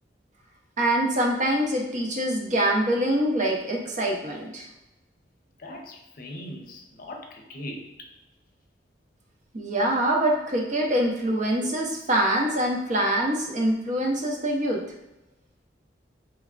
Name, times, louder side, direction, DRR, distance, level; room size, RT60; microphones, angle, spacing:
voice 1, 0.8-4.7 9.5-14.8, right 1 dB, 45° right, 0 dB, 0.7 m, -24 dB
voice 2, 5.6-8.1, left 1 dB, 50° left, 2 dB, 0.6 m, -40 dB
3.4 x 3.2 x 2.4 m, 0.95 s
head